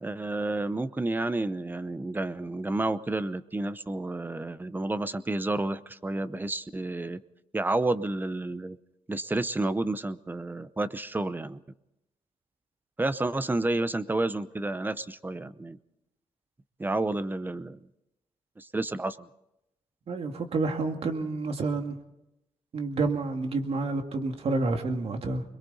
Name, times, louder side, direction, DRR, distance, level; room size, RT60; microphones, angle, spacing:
voice 1, 0.0-7.2 7.5-8.8 9.1-11.6 13.0-15.8 16.8-17.8 18.6-19.3, right 2 dB, 15° right, 15 dB, 0.7 m, -30 dB
voice 2, 20.1-22.0 22.7-25.4, right 3 dB, 55° right, 5 dB, 2.3 m, -29 dB
29.5 x 22.0 x 4.1 m, 0.87 s
cardioid pair, 115°, 12 cm